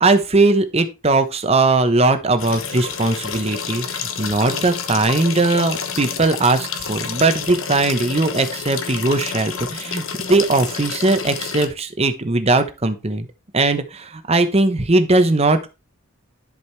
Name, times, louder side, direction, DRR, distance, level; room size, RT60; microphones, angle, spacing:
voice 1, 0.0-13.3 13.5-15.7, right 2 dB, 30° right, 9 dB, 0.9 m, -19 dB
sound 1, 2.4-11.7, left 6 dB, 75° left, 1.1 m, -29 dB
11.0 x 5.2 x 3.3 m, 0.27 s
head